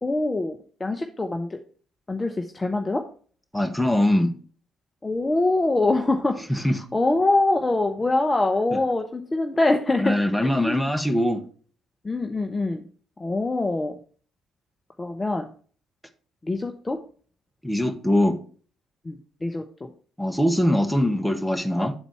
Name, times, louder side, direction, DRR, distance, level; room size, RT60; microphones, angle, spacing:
voice 1, 0.0-1.6 2.1-3.0 5.0-10.2 10.6-10.9 12.0-12.8 13.2-14.0 15.0-15.5 16.4-17.0 19.0-19.9, left 2 dB, 25° left, 5 dB, 0.7 m, -24 dB
voice 2, 3.5-4.3 6.6-6.7 10.0-11.4 17.6-18.4 20.2-21.9, left 1 dB, 5° left, 4 dB, 1.1 m, -22 dB
8.1 x 4.0 x 4.6 m, 0.42 s
figure-of-eight pair, 45°, 0 cm